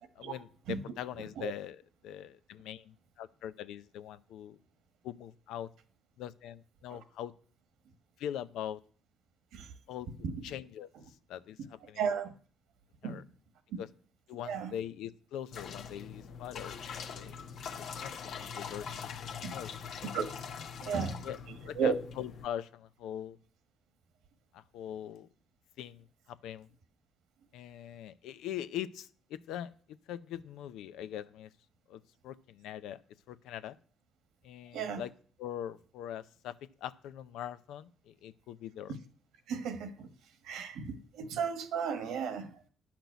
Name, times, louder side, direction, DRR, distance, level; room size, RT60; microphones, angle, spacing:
voice 1, 0.2-4.6 5.0-5.7 6.2-7.3 8.2-8.8 9.9-10.1 10.4-10.9 11.3-12.0 13.0-13.2 13.8-13.9 14.3-17.5 17.8-19.7 20.8-21.4 21.7-23.4 24.5-25.3 25.8-26.7 27.5-31.5 31.9-33.0 33.3-33.8 34.4-35.1 35.4-39.0, left 10 dB, 90° left, 0.6 m, -42 dB
voice 2, 1.2-1.5 6.9-7.0 9.5-9.7 10.2-10.4 12.0-12.3 13.0-13.2 13.7-13.8 14.5-14.7 19.4-19.5 20.1-20.3 20.8-21.2 21.7-21.9 34.7-35.0 38.9-39.0 39.5-40.1 40.4-42.7, right 6 dB, 85° right, 1.5 m, -34 dB
sound 1, 15.5-22.5, left 6 dB, 70° left, 1.0 m, -43 dB
10.5 x 6.0 x 8.1 m
cardioid pair, 90°, 0 cm